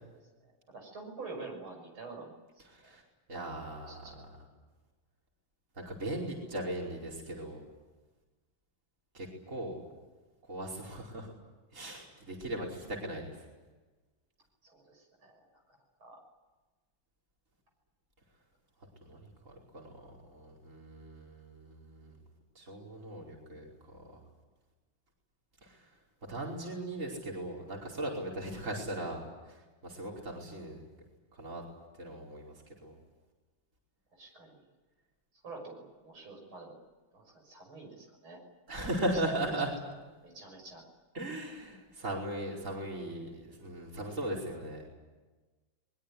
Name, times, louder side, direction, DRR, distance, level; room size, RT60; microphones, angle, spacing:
voice 1, 0.4-2.9 3.8-4.2 14.6-15.6 16.0-16.2 34.1-34.6 35.4-36.8 37.1-38.4 40.2-40.8, right 3 dB, 80° right, 2 dB, 7.0 m, -48 dB
voice 2, 2.7-3.0 3.3-4.1 5.8-7.7 9.1-9.8 10.5-11.3 11.7-13.4 19.0-22.2 22.6-24.2 25.6-25.9 26.3-30.8 31.3-31.6 32.0-32.5 32.8-32.9 38.7-39.7 41.1-44.9, right 1 dB, 35° right, -2 dB, 5.3 m, -38 dB
23.0 x 22.0 x 9.9 m, 1.2 s
omnidirectional pair, 2.2 m